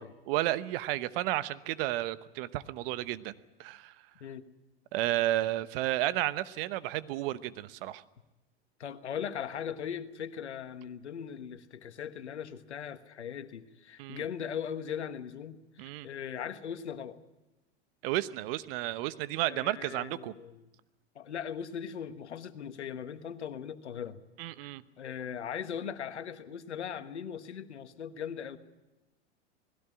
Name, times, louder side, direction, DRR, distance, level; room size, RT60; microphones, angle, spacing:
voice 1, 0.0-3.3 3.6-3.9 4.9-8.0 14.0-14.2 15.8-16.1 18.0-20.3 24.4-24.8, right 15 dB, 55° right, 14 dB, 1.1 m, -32 dB
voice 2, 8.8-17.2 19.5-20.7 21.1-24.2 24.6-28.6, left 8 dB, 85° left, 11 dB, 1.4 m, -39 dB
20.0 x 16.5 x 9.8 m, 1.0 s
hypercardioid pair, 95°, 33 cm